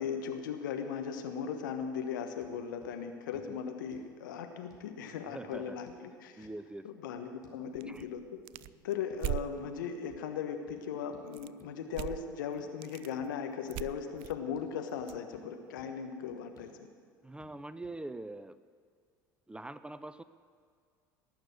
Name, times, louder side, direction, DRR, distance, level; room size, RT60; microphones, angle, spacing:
voice 1, 0.0-6.5 6.8-8.2 8.8-16.7, left 7 dB, 75° left, 6 dB, 1.3 m, -38 dB
sound 1, 2.4-2.5 2.8-2.9 3.3-3.5 3.9-4.1 4.7-4.9 5.5-6.0 6.4-6.6 7.4-7.6 8.0-8.1 8.6-8.8 9.1-9.2 9.6-9.8 10.1-10.3 10.7-10.8 11.1-11.3 11.6-11.7 12.1-12.3 12.6-12.7 13.2-13.3 13.7-13.9 14.1-14.3 14.6-14.7 15.0-15.5 15.8-15.9 16.3-16.7 17.4-17.5 17.8-18.0, left 6 dB, 35° left, 3.0 m, -60 dB
voice 2, 5.3-5.8 6.4-6.9 7.9-8.1 17.2-18.6 19.5-20.2, right 2 dB, 10° right, 14 dB, 0.5 m, -43 dB
sound 2, 7.7-9.5 11.3-11.6 11.9-12.3 12.6-13.1 13.7-15.2, right 18 dB, 60° right, 0.4 m, -39 dB
18.5 x 6.8 x 7.9 m, 2.1 s
hypercardioid pair, 70°, 11 cm